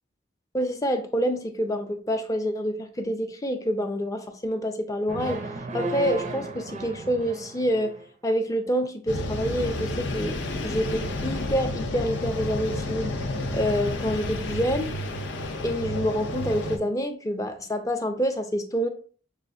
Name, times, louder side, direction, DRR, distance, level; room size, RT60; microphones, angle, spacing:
voice 1, 0.5-5.4 5.7-7.9 8.2-10.4 10.6-13.1 13.5-14.9 15.6-18.9, equal, 15° left, 6 dB, 0.4 m, -27 dB
sound 1, 5.1-8.1, right 3 dB, 40° right, 0.4 m, -34 dB
sound 2, 9.1-16.8, left 1 dB, 70° left, 0.6 m, -31 dB
6.3 x 2.4 x 2.6 m, 0.42 s
head